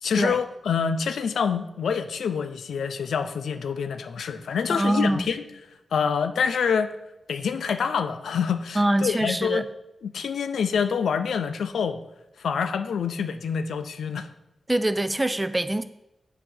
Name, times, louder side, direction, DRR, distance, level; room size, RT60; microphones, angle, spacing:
voice 1, 0.0-6.9 7.3-9.6 10.0-12.0 12.4-14.3, left 6 dB, 90° left, 0.4 m, -26 dB
voice 2, 4.7-5.2 8.8-9.6 14.7-15.8, right 1 dB, 15° right, 0.3 m, -24 dB
7.6 x 2.7 x 5.5 m
cardioid pair, 65°, 0 cm